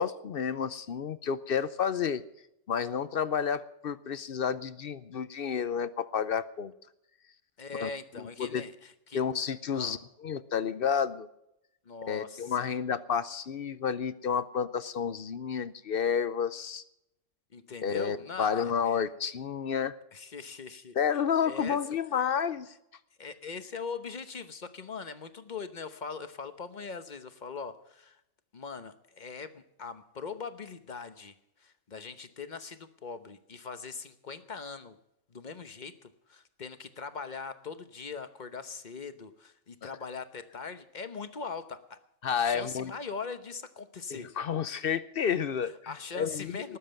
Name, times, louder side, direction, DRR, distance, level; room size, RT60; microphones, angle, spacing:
voice 1, 0.0-2.2 2.7-6.7 7.8-8.6 9.1-11.3 12.1-16.8 17.8-20.0 21.0-22.7 39.8-39.9 42.2-42.9 44.1-46.6, left 7 dB, 55° left, 15 dB, 0.8 m, -30 dB
voice 2, 7.6-9.2 9.7-10.0 11.8-12.7 17.5-19.0 20.1-21.0 21.5-21.8 23.2-28.2 28.5-35.0 35.3-42.0 42.2-44.3 45.6-46.8, left 5 dB, 40° left, 10 dB, 1.0 m, -41 dB
19.5 x 7.7 x 7.7 m, 0.82 s
omnidirectional pair, 1.3 m